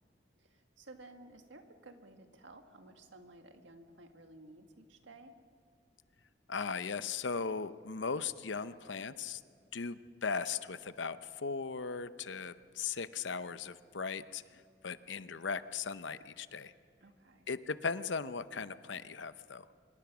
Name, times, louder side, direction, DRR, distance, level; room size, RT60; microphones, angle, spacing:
voice 1, 0.4-5.3 17.0-17.5, right 2 dB, 90° right, 5 dB, 1.9 m, -55 dB
voice 2, 6.5-9.4 9.7-14.4 14.8-16.7 17.5-19.7, left 5 dB, 80° left, 13 dB, 0.8 m, -38 dB
25.5 x 22.5 x 6.2 m, 2.3 s
head